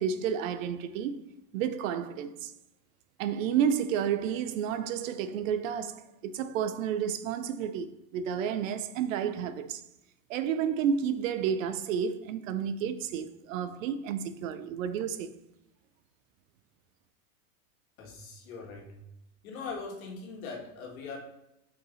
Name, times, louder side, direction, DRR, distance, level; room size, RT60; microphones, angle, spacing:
voice 1, 0.0-2.5 3.2-9.8 10.3-15.3, right 8 dB, 60° right, 0.6 m, -31 dB
voice 2, 18.0-19.0 19.4-21.2, left 4 dB, 65° left, 2.1 m, -41 dB
5.6 x 4.5 x 4.0 m
supercardioid pair, 165°, 45 cm